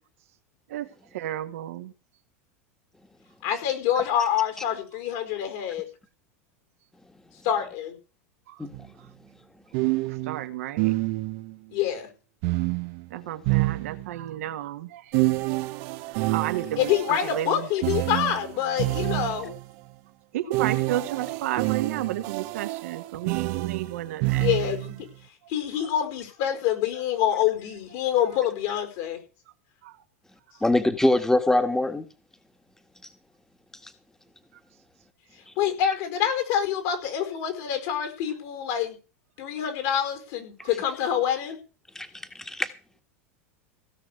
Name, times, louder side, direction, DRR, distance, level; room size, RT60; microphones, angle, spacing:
voice 1, 1.1-1.9 8.5-8.6 10.3-11.0 13.1-15.0 16.3-17.7 20.3-24.5 29.8-29.9, right 13 dB, 75° right, 1.7 m, -32 dB
voice 2, 3.4-5.9 7.4-8.0 11.7-12.1 16.7-19.5 24.4-24.9 25.5-29.2 35.6-39.0 39.4-41.6, left 10 dB, 65° left, 5.0 m, -26 dB
sound 1, 8.7-8.9 9.7-11.5 12.4-14.3 15.1-19.6 20.5-25.0, right 22 dB, 60° right, 0.9 m, -28 dB
voice 3, 30.6-32.0 41.9-42.1 42.3-42.7, left 1 dB, 5° left, 1.7 m, -23 dB
17.0 x 6.2 x 8.1 m
hypercardioid pair, 100°, 8 cm